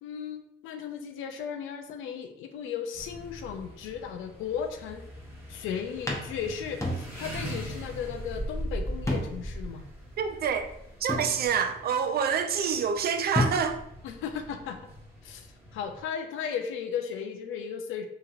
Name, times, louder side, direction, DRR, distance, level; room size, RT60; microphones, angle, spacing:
voice 1, 0.0-5.0 5.5-9.8 14.0-14.8 15.2-15.5 15.7-18.1, left 7 dB, 90° left, 6 dB, 0.4 m, -35 dB
sound 1, 2.9-16.0, equal, 10° right, 1.2 m, -41 dB
sound 2, 5.3-5.5 6.1-7.5 7.8-7.9 9.1-9.6 10.0-10.1 11.1-11.9 13.0-13.1 13.4-14.0, left 1 dB, 15° left, 0.7 m, -31 dB
voice 2, 10.2-10.7 11.0-13.8, right 7 dB, 50° right, 6 dB, 0.4 m, -27 dB
2.9 x 2.8 x 2.4 m, 0.77 s
cardioid pair, 90°, 20 cm